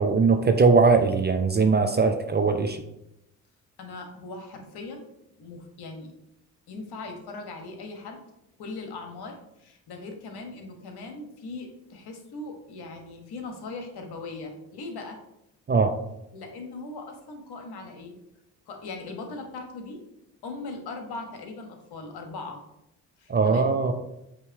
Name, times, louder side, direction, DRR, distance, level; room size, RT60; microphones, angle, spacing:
voice 1, 0.0-2.8 15.7-16.0 23.3-23.9, right 4 dB, 20° right, 6 dB, 0.6 m, -20 dB
voice 2, 3.8-5.0 5.4-6.1 6.7-8.2 8.6-15.2 16.3-18.2 18.7-20.0 20.4-22.6 23.2-23.9, left 3 dB, 55° left, 4 dB, 1.3 m, -39 dB
8.4 x 3.0 x 4.6 m, 0.84 s
figure-of-eight pair, 40°, 47 cm